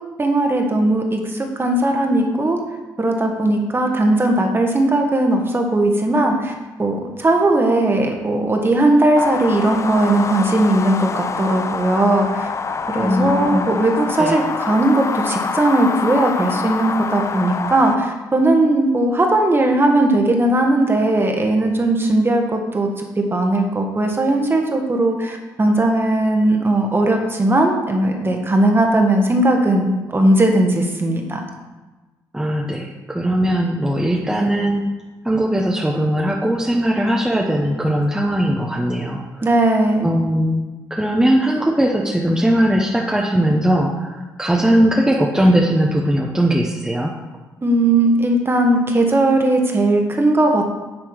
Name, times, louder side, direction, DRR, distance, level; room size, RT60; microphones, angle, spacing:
voice 1, 0.2-2.6 3.0-6.5 6.8-12.5 12.9-31.4 39.4-40.1 47.6-50.6, right 1 dB, 25° right, 3 dB, 1.5 m, -18 dB
sound 1, 9.2-17.9, left 5 dB, 35° left, 0.5 m, -26 dB
voice 2, 13.0-13.7 14.2-14.4 32.3-34.9 35.2-39.2 40.0-40.6 40.9-47.1, equal, 5° right, -1 dB, 1.0 m, -19 dB
8.9 x 3.5 x 6.4 m, 1.2 s
supercardioid pair, 55°, 9 cm